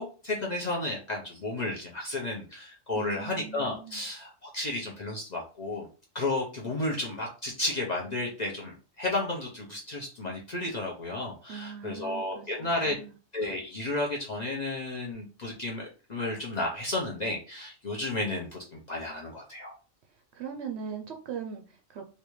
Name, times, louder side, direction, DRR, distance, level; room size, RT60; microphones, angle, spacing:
voice 1, 0.0-5.9 6.1-13.0 13.3-19.7, left 2 dB, 40° left, -2 dB, 0.7 m, -33 dB
voice 2, 2.9-4.0 11.5-13.1 20.3-22.0, right 7 dB, 65° right, 3 dB, 0.7 m, -40 dB
3.3 x 2.6 x 3.0 m, 0.36 s
omnidirectional pair, 1.4 m